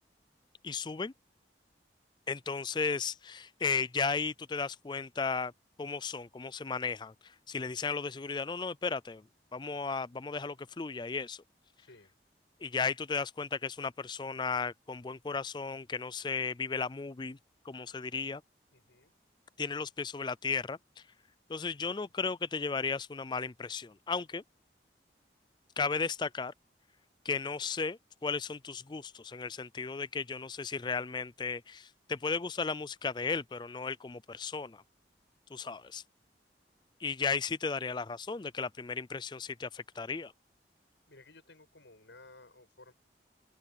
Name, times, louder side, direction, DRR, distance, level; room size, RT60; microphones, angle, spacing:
voice 1, 0.6-1.1 2.3-5.5 5.8-7.1 7.5-9.2 9.5-11.4 12.6-17.4 17.7-18.4 19.6-20.8 21.5-24.4 25.8-26.5 27.2-34.8 35.5-36.0 37.0-40.3, left 5 dB, 25° left, 0.4 m, -35 dB
voice 2, 11.8-12.1 18.7-19.1 41.1-42.9, left 2 dB, 85° left, 7.5 m, -56 dB
open air
head